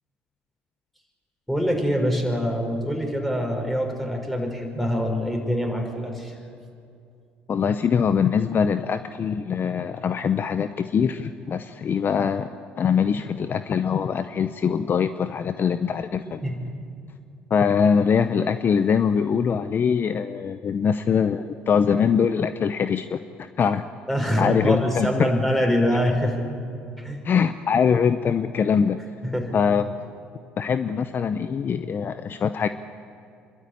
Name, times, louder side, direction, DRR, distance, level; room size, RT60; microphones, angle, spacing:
voice 1, 1.5-6.3 16.4-16.7 24.1-26.4 27.0-27.2 29.2-29.6, equal, 5° left, 2 dB, 5.6 m, -24 dB
voice 2, 7.5-12.5 12.8-16.4 17.5-23.8 24.4-25.1 27.2-29.0 29.5-29.9 30.6-32.7, left 6 dB, 45° left, 11 dB, 0.8 m, -23 dB
26.5 x 12.5 x 10.0 m, 2.5 s
hypercardioid pair, 65°, 5 cm